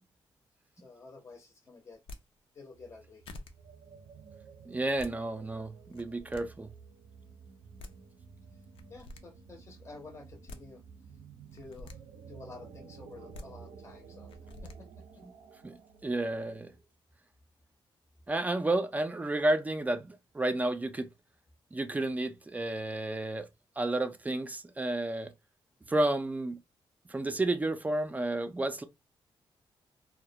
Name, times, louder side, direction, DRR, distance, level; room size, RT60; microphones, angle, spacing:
voice 1, 0.8-2.0 2.5-3.2 8.9-10.8 11.5-12.0 12.3-14.3 14.6-14.9, left 3 dB, 30° left, 0.6 m, -50 dB
sound 1, 1.9-2.2 2.9-3.0 3.2-3.5 4.7-5.1 5.8-6.4 7.5-7.6 7.8-7.9 8.7-9.2 10.2-10.6 11.5-12.0 13.1-13.4 14.3-14.7, left 2 dB, 80° left, 0.4 m, -46 dB
sound 2, 2.7-16.9, right 6 dB, 80° right, 0.5 m, -53 dB
voice 2, 4.6-6.7 15.6-16.7 18.3-21.1 21.7-23.5 23.8-25.3 25.9-26.6 27.1-28.8, right 2 dB, 15° right, 0.3 m, -31 dB
2.3 x 2.1 x 2.7 m
cardioid pair, 110°, 9 cm